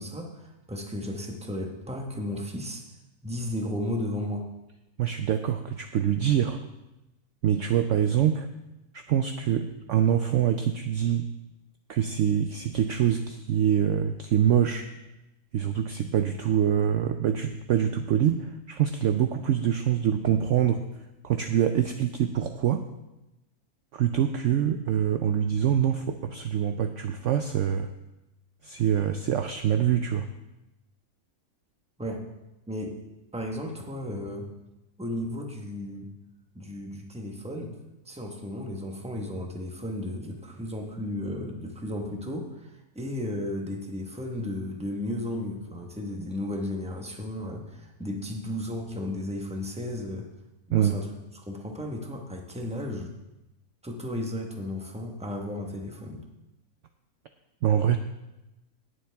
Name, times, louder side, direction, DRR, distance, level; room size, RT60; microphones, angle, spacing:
voice 1, 0.0-2.8 3.2-4.5 32.0-32.2 32.7-33.0 33.3-34.5 35.0-36.1 36.5-37.8 38.0-50.3 50.7-51.1 51.5-53.1 53.8-56.2, left 1 dB, 5° right, 2 dB, 1.1 m, -34 dB
voice 2, 5.0-6.6 7.4-8.5 8.9-11.3 11.9-14.9 15.5-20.8 21.2-22.8 23.9-27.9 28.6-30.3 50.7-51.0 57.6-58.0, right 9 dB, 65° right, 7 dB, 0.8 m, -25 dB
18.5 x 7.2 x 3.5 m, 0.96 s
omnidirectional pair, 1.6 m